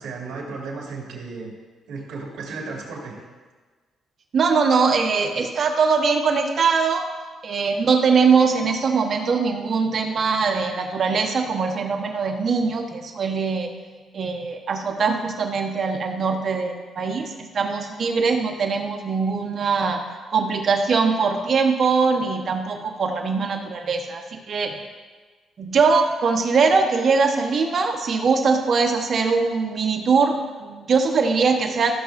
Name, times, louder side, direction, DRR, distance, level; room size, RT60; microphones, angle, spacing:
voice 1, 0.0-1.5 1.9-3.1, right 4 dB, 80° right, -2 dB, 2.7 m, -34 dB
voice 2, 4.3-7.0 7.4-13.7 14.1-20.0 20.3-24.7 25.6-32.0, right 5 dB, 50° right, 3 dB, 1.2 m, -21 dB
14.5 x 6.8 x 2.6 m, 1.4 s
cardioid pair, 90°, 0 cm